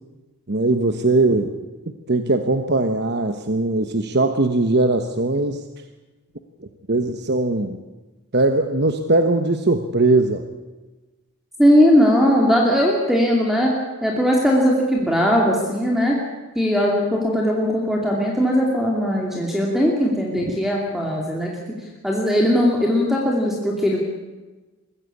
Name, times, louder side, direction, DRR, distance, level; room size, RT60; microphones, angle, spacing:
voice 1, 0.5-1.5 2.1-5.6 6.6-7.8 8.3-10.4 20.4-20.5, right 2 dB, 50° right, 7 dB, 1.1 m, -20 dB
voice 2, 11.6-13.7 14.0-16.2 16.6-21.5 22.0-24.1, equal, ahead, -1 dB, 2.6 m, -19 dB
22.5 x 15.0 x 8.5 m, 1.2 s
head